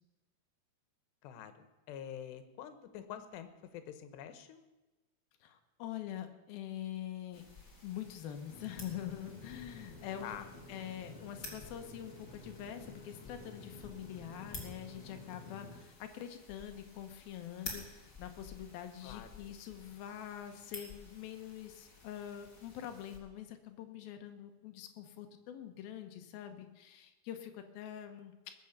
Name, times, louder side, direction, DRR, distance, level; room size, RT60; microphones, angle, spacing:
voice 1, 1.2-4.7 10.2-10.5 19.0-19.3, left 9 dB, 85° left, 10 dB, 3.2 m, -47 dB
voice 2, 5.4-7.4 7.8-10.4 10.7-28.5, left 10 dB, 70° left, 6 dB, 2.7 m, -45 dB
sound 1, 7.3-23.2, left 3 dB, 25° left, 1.9 m, -52 dB
sound 2, 8.5-15.8, left 2 dB, 45° left, 2.8 m, -52 dB
20.0 x 7.8 x 7.1 m, 1.1 s
omnidirectional pair, 4.8 m